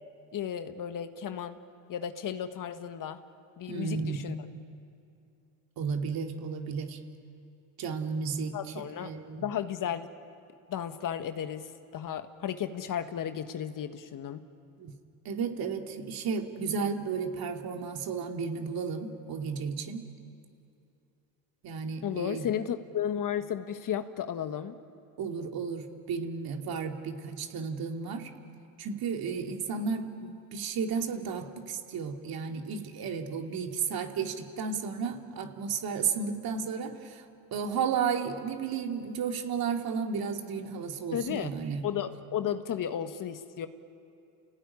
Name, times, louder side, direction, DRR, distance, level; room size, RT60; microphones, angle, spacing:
voice 1, 0.3-1.6 1.9-3.2 3.6-4.3 8.5-9.1 9.4-10.1 10.7-14.4 22.0-24.7 41.1-41.5 41.8-43.7, left 9 dB, 50° left, 9 dB, 1.6 m, -34 dB
voice 2, 3.7-4.3 5.8-7.0 7.8-8.5 9.0-9.4 14.8-14.9 15.2-20.0 21.6-22.5 25.2-28.3 28.8-37.2 37.5-41.8, right 6 dB, 55° right, 3 dB, 2.8 m, -33 dB
30.0 x 17.5 x 9.9 m, 2.7 s
supercardioid pair, 80°, 42 cm